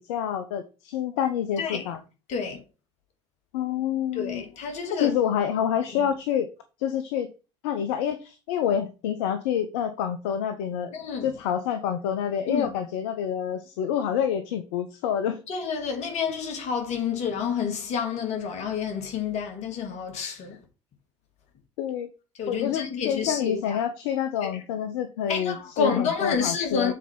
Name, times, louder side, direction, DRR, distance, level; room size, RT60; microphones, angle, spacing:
voice 1, 0.1-2.0 3.5-4.4 4.7-6.5 6.8-7.3 7.6-10.9 11.2-15.4 21.8-22.1 22.5-26.9, left 9 dB, 65° left, 0.7 m, -27 dB
voice 2, 2.3-2.6 4.1-5.1 6.0-6.1 10.9-11.3 12.5-12.7 15.5-20.6 22.4-23.8 24.4-24.5 25.3-26.9, left 6 dB, 50° left, 2.0 m, -29 dB
7.2 x 4.2 x 4.4 m
figure-of-eight pair, 60°, 15 cm